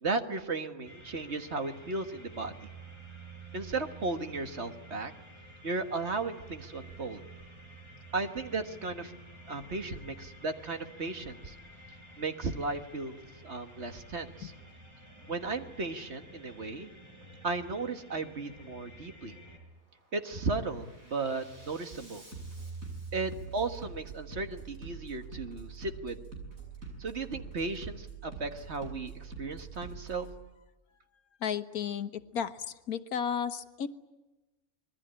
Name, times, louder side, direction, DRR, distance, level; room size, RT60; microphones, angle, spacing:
voice 1, 0.0-2.5 3.5-5.1 5.6-7.2 8.1-9.1 9.5-11.6 12.2-13.2 13.4-14.5 15.3-16.9 17.4-19.4 20.1-22.2 23.1-26.2 27.0-30.3, right 3 dB, 50° right, 7 dB, 1.8 m, -35 dB
sound 1, 0.8-19.6, right 2 dB, 20° right, 5.5 m, -51 dB
Bass drum, 14.5-14.7 15.2-15.7 16.5-16.7 17.2-17.7 18.5-18.7 19.2-19.7 20.1-30.3, right 4 dB, 65° right, 7.6 m, -45 dB
voice 2, 31.4-33.9, left 7 dB, 85° left, 11 dB, 1.6 m, -33 dB
26.0 x 21.5 x 8.8 m, 1.1 s
omnidirectional pair, 1.5 m